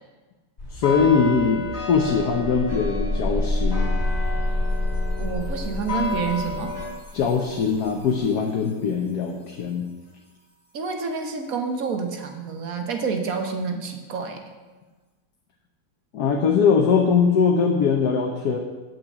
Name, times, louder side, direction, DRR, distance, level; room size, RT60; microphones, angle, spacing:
sound 1, 0.6-6.9, left 3 dB, 35° left, 3.5 m, -32 dB
voice 1, 0.7-3.9 7.1-9.9 16.1-18.6, left 6 dB, 65° left, 2 dB, 1.3 m, -21 dB
sound 2, 1.2-1.3 1.6-8.4, left 1 dB, 75° right, 4.6 m, -28 dB
voice 2, 5.2-6.7 10.7-14.4, right 5 dB, 55° right, 4 dB, 1.5 m, -28 dB
9.0 x 5.9 x 7.8 m, 1.3 s
omnidirectional pair, 1.9 m